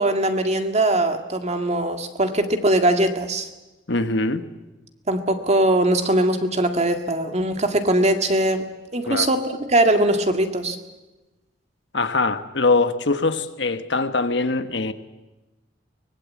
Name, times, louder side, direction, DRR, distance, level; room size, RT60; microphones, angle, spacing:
voice 1, 0.0-3.5 5.1-8.7 8.9-10.8, right 1 dB, 35° right, 6 dB, 2.0 m, -21 dB
voice 2, 3.9-4.4 9.0-9.3 11.9-14.9, left 3 dB, 70° left, 9 dB, 1.3 m, -22 dB
24.0 x 20.5 x 8.5 m, 1.1 s
head